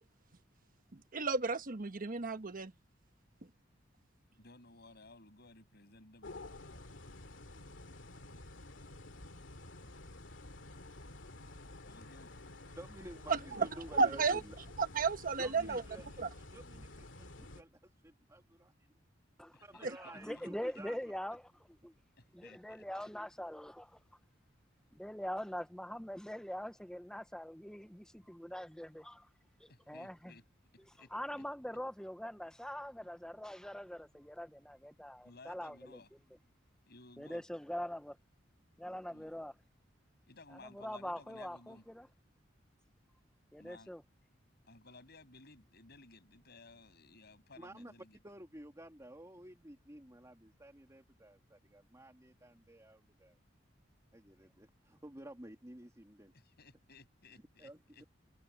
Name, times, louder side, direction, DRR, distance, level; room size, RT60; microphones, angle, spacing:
voice 1, 1.1-2.7 13.3-13.7 13.9-14.4 14.8-15.8 16.2-16.3, right 4 dB, 45° right, 1.2 m, -32 dB
voice 2, 4.3-6.4 11.8-12.4 19.5-19.9 20.4-20.5 22.2-22.9 29.7-30.4 31.0-31.4 35.2-36.1 36.9-37.4 39.1-39.4 40.3-41.8 43.6-43.9 44.7-48.2 56.3-58.0, left 3 dB, 60° left, 7.8 m, -58 dB
sound 1, 6.2-17.6, left 2 dB, 75° left, 2.5 m, -51 dB
voice 3, 12.7-14.6 15.4-18.9 19.6-21.0 47.6-47.9 48.2-53.4 54.1-56.3 57.6-58.0, right 1 dB, 15° right, 3.0 m, -52 dB
voice 4, 20.0-21.4 21.8-21.9 22.3-24.0 24.9-29.3 29.6-30.3 31.1-36.0 37.2-38.2 38.8-39.5 40.7-42.1 43.5-44.0, equal, 5° left, 0.8 m, -43 dB
head